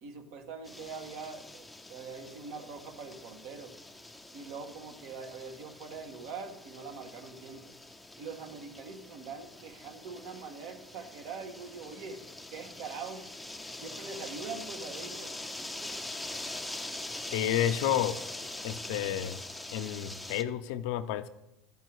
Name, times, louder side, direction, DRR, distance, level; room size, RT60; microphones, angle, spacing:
voice 1, 0.0-3.8 4.3-7.8 8.2-13.3 13.7-15.4, right 5 dB, 70° right, 4 dB, 1.6 m, -43 dB
sound 1, 0.7-20.4, left 2 dB, 5° left, 0.6 m, -43 dB
voice 2, 17.3-18.2 18.6-19.4 19.7-21.3, left 11 dB, 75° left, 10 dB, 0.6 m, -30 dB
13.0 x 5.7 x 4.7 m, 0.89 s
supercardioid pair, 115°, 0 cm